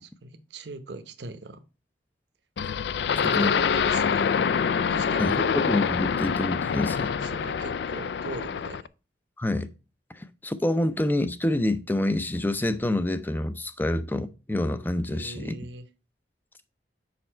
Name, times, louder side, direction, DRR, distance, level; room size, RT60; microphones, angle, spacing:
voice 1, 0.0-1.6 3.0-4.3 4.9-5.5 7.1-8.9 15.0-15.9, right 3 dB, 75° right, 0.8 m, -41 dB
sound 1, 2.6-8.9, left 6 dB, 65° left, 0.3 m, -26 dB
voice 2, 3.1-3.5 5.2-7.1 9.4-9.7 10.1-15.5, left 1 dB, 10° left, 0.5 m, -27 dB
6.8 x 5.4 x 4.3 m
head